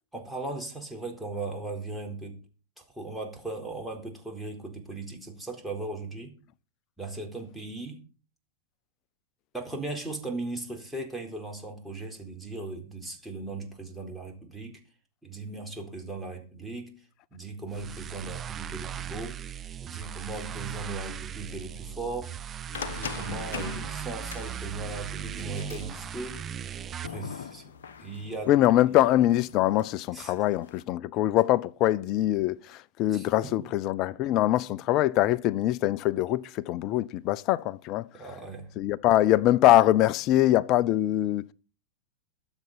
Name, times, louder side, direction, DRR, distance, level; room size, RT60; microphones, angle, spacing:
voice 1, 0.1-2.4 2.8-6.3 7.0-8.0 9.5-14.8 15.2-16.9 17.3-19.4 19.8-22.3 22.8-26.4 26.8-27.6 28.0-28.5 30.1-30.3 33.1-33.7 38.1-38.7, right 3 dB, 5° right, 4.2 m, -38 dB
sound 1, 17.7-27.1, right 9 dB, 25° right, 0.6 m, -38 dB
sound 2, 22.7-30.8, left 8 dB, 60° left, 1.2 m, -42 dB
voice 2, 28.5-38.1 38.8-41.4, left 14 dB, 40° left, 0.6 m, -23 dB
22.5 x 8.0 x 4.2 m
figure-of-eight pair, 95°, 0 cm